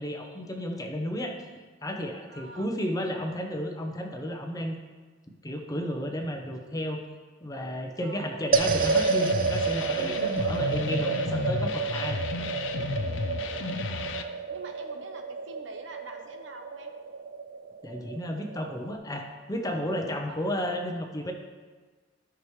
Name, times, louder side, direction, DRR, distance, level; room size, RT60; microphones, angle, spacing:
voice 1, 0.0-1.4 1.8-4.8 5.4-7.0 7.4-12.2 17.8-21.3, equal, 20° left, 3 dB, 0.8 m, -33 dB
voice 2, 2.3-2.8 4.2-4.3 8.0-8.5 13.6-16.9 20.3-20.5, right 3 dB, 75° right, 5 dB, 0.9 m, -46 dB
sound 1, 8.5-14.2, left 4 dB, 80° left, 0.6 m, -33 dB
sound 2, 8.5-19.0, right 5 dB, 45° right, 0.4 m, -30 dB
13.0 x 6.0 x 3.2 m, 1.4 s
head